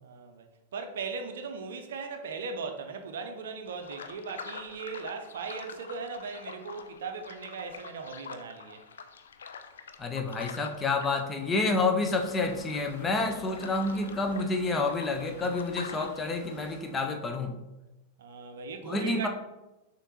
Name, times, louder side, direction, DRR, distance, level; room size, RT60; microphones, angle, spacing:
voice 1, 0.0-8.8 18.2-19.3, right 4 dB, 60° right, 0.5 m, -38 dB
sound 1, 3.7-16.2, left 6 dB, 65° left, 0.3 m, -46 dB
voice 2, 10.0-17.6 18.8-19.3, left 3 dB, 15° left, 0.5 m, -29 dB
sound 2, 12.0-17.2, left 1 dB, 50° left, 1.2 m, -48 dB
6.3 x 2.5 x 3.0 m
figure-of-eight pair, 90°, 0 cm